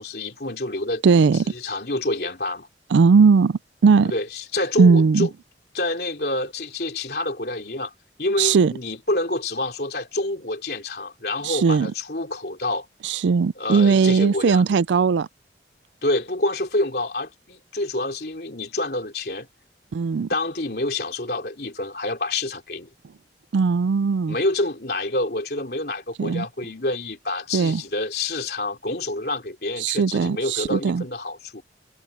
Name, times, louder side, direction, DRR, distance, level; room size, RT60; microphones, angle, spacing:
voice 1, 0.0-1.0 1.5-2.7 4.0-5.3 5.7-7.9 8.2-12.9 13.6-14.6 16.0-19.5 20.3-22.9 24.3-31.6, left 2 dB, 60° left, 3.6 m, -27 dB
voice 2, 1.0-1.5 2.9-4.1 4.8-5.3 8.4-8.7 11.4-11.9 13.0-15.3 19.9-20.3 23.5-24.3 26.2-26.5 27.5-27.8 29.8-31.0, right 5 dB, 90° right, 0.4 m, -18 dB
head